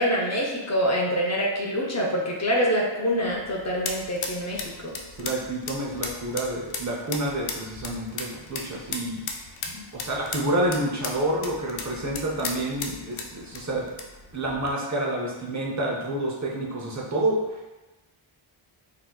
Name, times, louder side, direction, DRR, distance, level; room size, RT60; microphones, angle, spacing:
voice 1, 0.0-4.9 9.7-9.8, equal, 35° left, -2 dB, 0.6 m, -25 dB
sound 1, 3.1-14.7, left 4 dB, 75° left, 0.6 m, -37 dB
voice 2, 5.1-9.2 9.9-13.9 14.3-17.7, right 1 dB, 35° right, -3 dB, 0.7 m, -28 dB
3.9 x 2.7 x 2.3 m, 1.1 s
wide cardioid pair, 85°, 49 cm